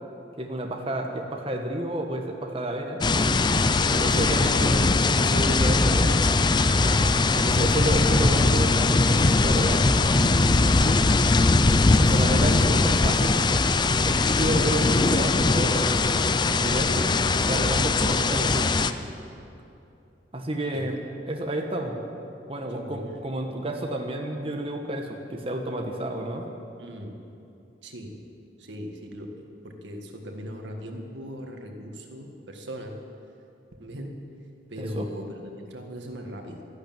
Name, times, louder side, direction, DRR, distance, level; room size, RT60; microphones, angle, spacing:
voice 1, 0.4-3.0 3.7-6.2 7.3-11.0 12.0-13.4 14.0-18.7 20.3-21.0 21.3-22.0 22.5-26.5 34.8-35.1, right 1 dB, 30° right, 2 dB, 1.2 m, -31 dB
sound 1, 3.0-18.9, left 3 dB, 25° left, 0.4 m, -21 dB
voice 2, 22.7-23.2 26.8-27.3 27.8-28.2 28.6-33.0 33.8-34.2 34.7-36.6, equal, 85° right, 3 dB, 1.7 m, -39 dB
13.5 x 11.5 x 8.9 m, 2.7 s
head